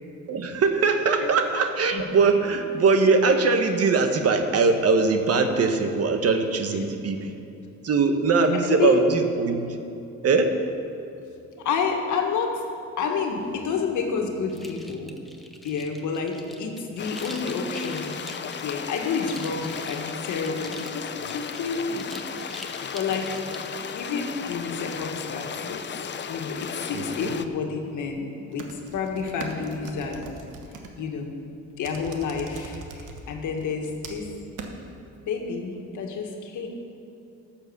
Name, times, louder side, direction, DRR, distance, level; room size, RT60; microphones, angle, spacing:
voice 1, 0.3-7.3 7.8-9.7 10.2-10.6 26.9-27.3, right 4 dB, 55° right, 6 dB, 1.2 m, -21 dB
voice 2, 8.6-9.0 11.6-12.6 13.0-15.2 15.6-18.2 18.6-23.3 23.9-30.3 30.9-31.3 31.8-34.3 35.3-36.7, left 5 dB, 75° left, 2 dB, 1.7 m, -29 dB
sound 1, 14.5-24.0, equal, ahead, 1.1 m, -45 dB
sound 2, 17.0-27.5, left 7 dB, 35° left, 0.6 m, -35 dB
sound 3, 28.5-30.9 31.8-33.2 33.6-34.3 34.6-34.7, right 4 dB, 90° right, 1.3 m, -40 dB
12.5 x 7.3 x 7.1 m, 2.8 s
cardioid pair, 90°, 30 cm